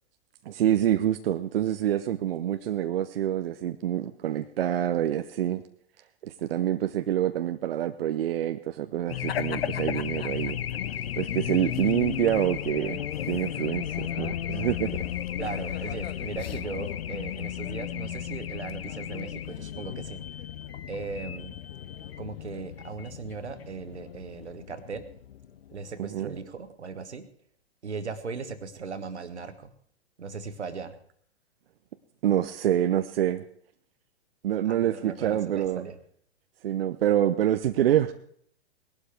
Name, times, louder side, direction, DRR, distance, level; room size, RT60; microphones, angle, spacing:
voice 1, 0.5-5.6 6.2-10.6 11.2-15.0 26.0-26.3 32.2-33.4 34.4-35.8 36.6-38.1, right 11 dB, 60° right, 9 dB, 0.7 m, -26 dB
Race car auto racing / Alarm, 9.1-26.0, left 10 dB, 60° left, 0.8 m, -34 dB
voice 2, 15.4-20.3 20.9-21.6 22.2-25.1 25.7-27.3 27.8-29.7 30.2-30.9 34.6-36.0, right 5 dB, 80° right, 10 dB, 1.3 m, -38 dB
19.0 x 11.5 x 3.4 m, 0.63 s
figure-of-eight pair, 110°, 33 cm